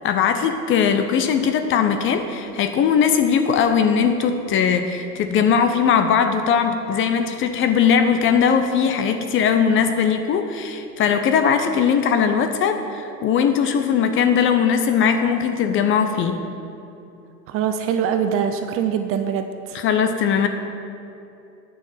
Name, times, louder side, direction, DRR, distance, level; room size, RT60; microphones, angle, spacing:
voice 1, 0.0-16.4 19.7-20.5, left 7 dB, 25° left, 7 dB, 0.5 m, -19 dB
voice 2, 17.5-19.8, right 8 dB, 30° right, 7 dB, 0.5 m, -23 dB
9.2 x 7.0 x 5.7 m, 2.7 s
figure-of-eight pair, 85°, 48 cm